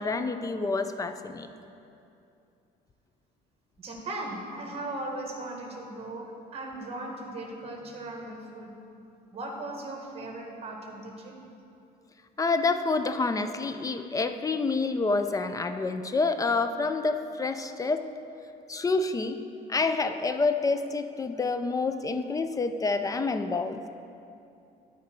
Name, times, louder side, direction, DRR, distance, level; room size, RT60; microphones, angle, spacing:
voice 1, 0.0-1.5 12.4-18.0 18.7-19.4 19.7-23.8, left 3 dB, 20° left, 9 dB, 0.4 m, -28 dB
voice 2, 3.8-8.7 9.3-11.3, right 2 dB, 35° right, 0 dB, 1.7 m, -38 dB
11.0 x 5.1 x 4.6 m, 2.7 s
cardioid pair, 110°, 17 cm